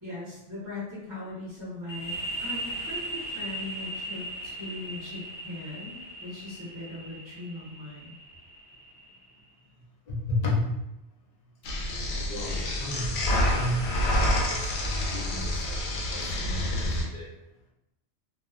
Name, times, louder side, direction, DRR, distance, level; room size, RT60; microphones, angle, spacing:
voice 1, 0.0-2.1 2.4-8.2, left 2 dB, 20° right, -10 dB, 0.8 m, -40 dB
sound 1, 1.9-9.3, right 1 dB, 25° left, 0.9 m, -38 dB
voice 2, 10.1-10.7 12.2-17.3, left 2 dB, 50° left, -4 dB, 0.5 m, -33 dB
sound 2, 11.6-17.0, left 1 dB, 85° left, 1.0 m, -28 dB
2.6 x 2.2 x 2.4 m, 0.89 s
omnidirectional pair, 1.4 m